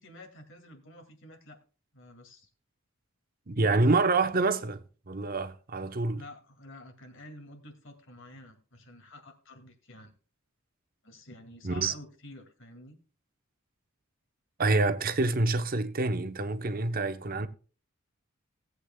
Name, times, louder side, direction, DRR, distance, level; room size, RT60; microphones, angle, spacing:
voice 1, 0.0-1.6 1.9-2.5 6.1-10.1 11.0-13.0, left 1 dB, 60° left, 2.3 m, -49 dB
voice 2, 3.5-6.2 11.6-11.9 14.6-17.5, right 3 dB, 45° right, 0.9 m, -27 dB
18.5 x 8.2 x 2.2 m
head